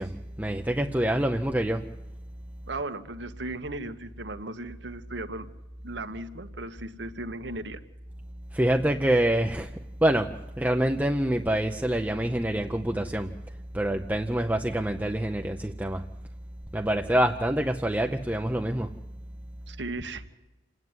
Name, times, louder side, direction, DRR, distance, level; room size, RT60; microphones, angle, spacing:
voice 1, 0.0-1.9 8.5-9.7 10.0-13.3 13.7-16.1 16.7-19.0, right 1 dB, 10° right, 4 dB, 0.6 m, -26 dB
voice 2, 2.7-5.5 5.8-7.8 19.7-20.2, right 2 dB, 80° right, 9 dB, 1.3 m, -36 dB
28.5 x 9.6 x 9.5 m, 1.1 s
head